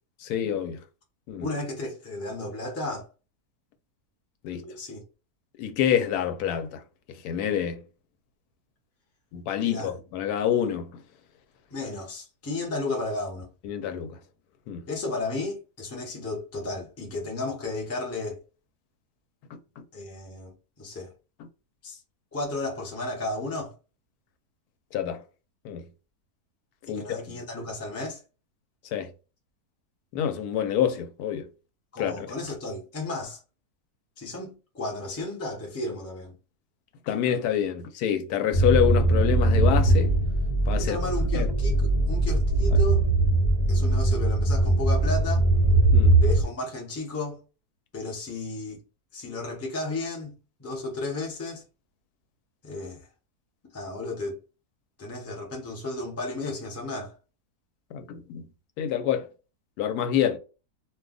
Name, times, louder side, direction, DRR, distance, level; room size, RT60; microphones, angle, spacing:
voice 1, 0.2-0.8 1.3-1.4 4.4-4.7 5.6-6.8 7.2-7.8 9.3-11.0 13.6-14.2 14.7-14.8 19.5-19.8 24.9-25.2 25.6-25.8 26.9-27.0 28.9-29.1 30.1-31.5 32.0-32.3 37.1-40.1 40.7-41.0 41.3-41.5 45.9-46.1 57.9-58.4 58.8-59.3 59.8-60.4, left 9 dB, 85° left, 1.1 m, -27 dB
voice 2, 1.4-3.1 4.6-5.0 9.6-9.9 11.7-13.5 14.9-18.4 19.9-21.1 21.8-22.0 22.3-23.7 26.9-28.2 31.9-33.4 34.2-36.4 40.8-43.0 43.7-45.5 46.2-47.4 47.9-48.8 49.1-51.6 52.6-53.1 53.7-54.4 55.0-57.1, left 2 dB, 20° left, 0.4 m, -33 dB
sound 1, 38.5-46.4, right 2 dB, 50° left, 0.7 m, -21 dB
2.5 x 2.2 x 3.7 m
omnidirectional pair, 1.6 m